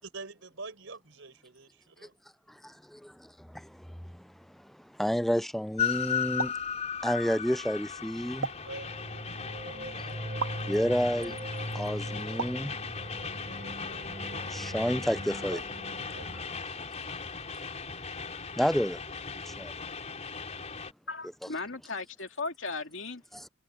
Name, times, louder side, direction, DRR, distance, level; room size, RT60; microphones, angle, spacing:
voice 1, 0.0-2.1 8.6-8.9 9.8-10.0 15.5-15.6 16.1-16.3, right 3 dB, 65° right, 5.0 m, -44 dB
voice 2, 2.6-4.3 4.6-6.5 7.0-8.5 10.7-11.4 11.7-12.7 14.4-15.6 16.8-16.9 18.6-19.0 19.5-19.7 23.3-23.5, equal, ahead, 0.4 m, -30 dB
Train, 5.8-20.9, left 6 dB, 35° left, 3.9 m, -37 dB
sound 1, 6.4-6.7 8.4-8.8 10.4-10.6 12.4-12.7, right 4 dB, 90° right, 2.5 m, -34 dB
sound 2, 8.5-16.4, right 1 dB, 35° right, 4.6 m, -41 dB
voice 3, 21.1-23.2, left 3 dB, 60° left, 2.6 m, -36 dB
head